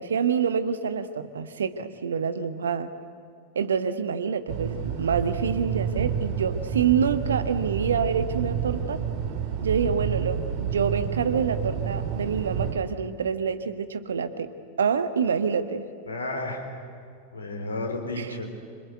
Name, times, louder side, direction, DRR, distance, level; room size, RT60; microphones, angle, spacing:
voice 1, 0.0-2.9 3.5-9.0 9.6-14.5 14.8-15.8 18.2-18.5, right 6 dB, 70° right, 10 dB, 1.5 m, -27 dB
sound 1, 4.5-12.7, right 8 dB, 45° right, 2.8 m, -29 dB
voice 2, 16.1-16.6 17.3-18.5, left 2 dB, 70° left, 3 dB, 4.6 m, -32 dB
26.0 x 25.5 x 8.3 m, 2.4 s
figure-of-eight pair, 90°, 0 cm